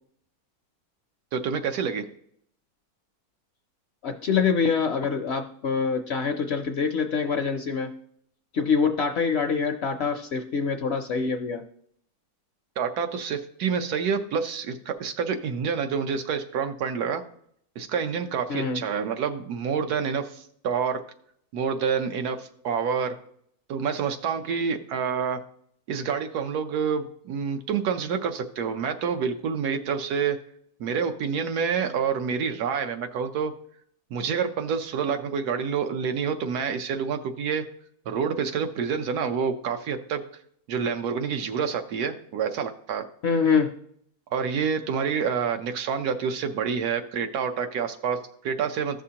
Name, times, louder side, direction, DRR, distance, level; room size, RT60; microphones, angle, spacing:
voice 1, 1.3-2.0 12.8-17.2 17.8-21.0 21.5-23.1 23.7-25.4 25.9-30.4 30.8-33.5 34.1-37.6 38.1-40.2 40.7-43.1 44.3-49.0, right 6 dB, 90° right, 7 dB, 1.3 m, -28 dB
voice 2, 4.0-7.9 8.5-11.6 18.5-18.8 43.2-43.7, left 5 dB, 65° left, 5 dB, 0.7 m, -25 dB
14.5 x 6.1 x 2.8 m, 0.66 s
omnidirectional pair, 1.6 m